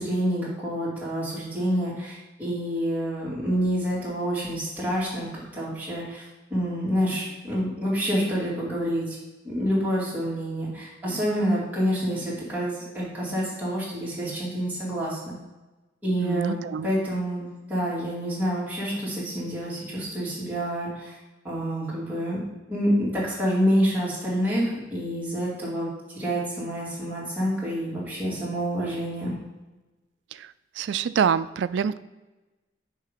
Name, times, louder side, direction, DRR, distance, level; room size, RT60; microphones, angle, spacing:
voice 1, 0.0-9.2 9.4-15.3 16.0-21.2 21.4-22.4 22.7-25.9 26.1-29.3, equal, 10° right, -7 dB, 2.4 m, -27 dB
voice 2, 16.2-16.9 30.4-30.5 30.8-32.0, right 7 dB, 80° right, 15 dB, 0.3 m, -26 dB
6.6 x 4.8 x 5.0 m, 1.1 s
head